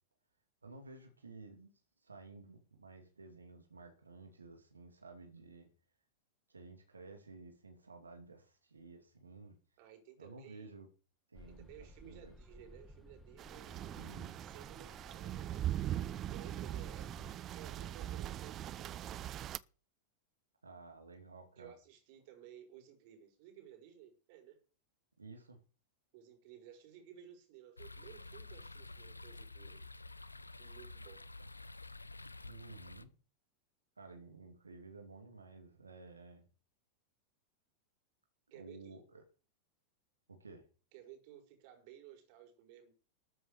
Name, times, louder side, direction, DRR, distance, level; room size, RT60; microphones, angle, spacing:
voice 1, 0.6-1.7 2.0-5.7 6.5-9.6 10.2-10.9 11.3-12.3 13.9-14.4 20.6-21.8 25.2-25.6 32.4-33.1 34.0-36.4 38.5-39.2 40.3-40.6, right 3 dB, 75° right, 2.6 m, -53 dB
voice 2, 9.8-10.7 11.6-13.9 14.4-15.9 16.3-19.3 21.6-24.6 26.1-29.9 30.6-31.2 38.5-39.1 40.9-42.9, right 10 dB, 45° right, 5.0 m, -56 dB
sound 1, 11.4-17.3, equal, 5° left, 1.8 m, -56 dB
sound 2, 13.4-19.6, right 12 dB, 30° right, 0.6 m, -41 dB
sound 3, 27.8-33.0, left 2 dB, 85° left, 0.7 m, -50 dB
13.0 x 7.8 x 6.6 m
figure-of-eight pair, 90°, 0 cm